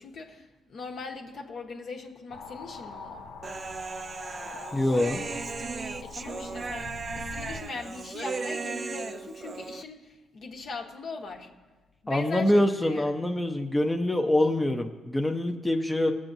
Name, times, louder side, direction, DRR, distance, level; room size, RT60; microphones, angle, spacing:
voice 1, 0.0-3.3 6.0-11.5 12.0-13.1, left 4 dB, 60° left, 1 dB, 1.2 m, -40 dB
sound 1, 2.3-7.6, left 4 dB, 85° left, 0.6 m, -43 dB
Human voice, 3.4-9.8, right 4 dB, 35° right, 0.3 m, -36 dB
voice 2, 4.7-5.2 12.1-16.1, left 1 dB, 10° left, 3 dB, 0.6 m, -25 dB
20.0 x 7.4 x 2.7 m, 1.3 s
cardioid pair, 90°, 0 cm